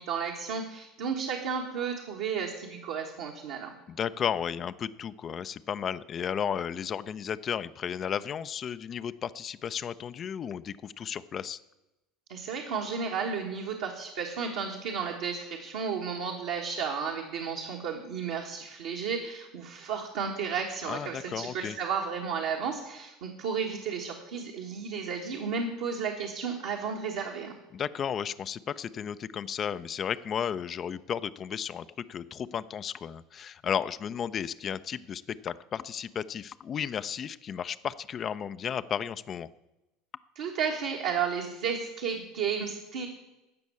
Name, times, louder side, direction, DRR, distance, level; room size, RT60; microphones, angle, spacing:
voice 1, 0.0-3.7 12.3-27.5 40.3-43.1, right 6 dB, 60° right, 0 dB, 1.5 m, -33 dB
voice 2, 3.9-11.6 20.9-21.8 27.7-39.5, left 8 dB, 35° left, 14 dB, 0.5 m, -34 dB
15.5 x 6.2 x 8.4 m, 0.98 s
figure-of-eight pair, 70°, 0 cm